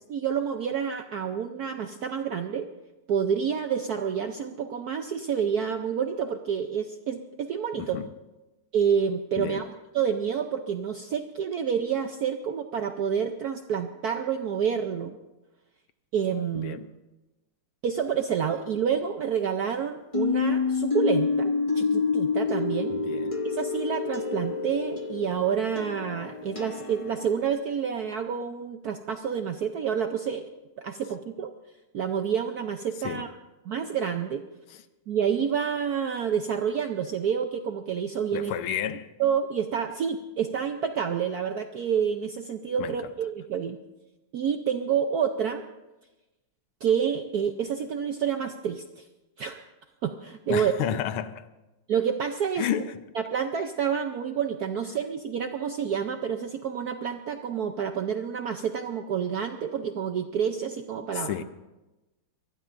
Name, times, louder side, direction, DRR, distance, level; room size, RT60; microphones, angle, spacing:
voice 1, 0.1-2.7 3.1-8.0 8.7-15.2 16.1-16.9 17.8-23.0 23.4-30.4 30.8-31.5 31.9-33.3 33.7-34.5 35.1-38.5 39.2-43.8 44.3-45.7 46.8-49.0 49.4-49.6 50.0-50.7 51.9-52.7 53.2-61.3, right 7 dB, 70° right, 0.9 m, -28 dB
voice 2, 7.8-8.1 9.4-9.6 16.5-16.9 22.9-23.4 33.0-33.2 34.7-34.8 38.3-39.1 42.8-43.0 50.5-51.5 52.6-53.0 61.1-61.4, left 10 dB, 75° left, 1.6 m, -31 dB
sound 1, 20.1-27.4, left 4 dB, 40° left, 0.4 m, -28 dB
24.5 x 19.5 x 2.6 m
omnidirectional pair, 2.4 m